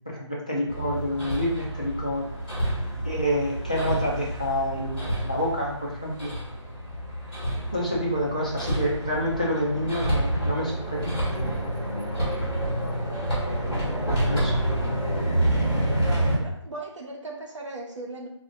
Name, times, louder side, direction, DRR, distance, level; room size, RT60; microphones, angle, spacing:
voice 1, 0.1-2.2 3.0-6.3 7.7-11.5 14.2-14.5, equal, 15° left, -4 dB, 0.3 m, -28 dB
Hammer, 0.7-16.3, right 1 dB, 5° right, 0.9 m, -28 dB
voice 2, 14.1-14.4 15.1-15.3 16.0-18.3, right 2 dB, 75° right, -1 dB, 1.0 m, -38 dB
3.8 x 2.4 x 3.5 m, 0.71 s
figure-of-eight pair, 170°, 16 cm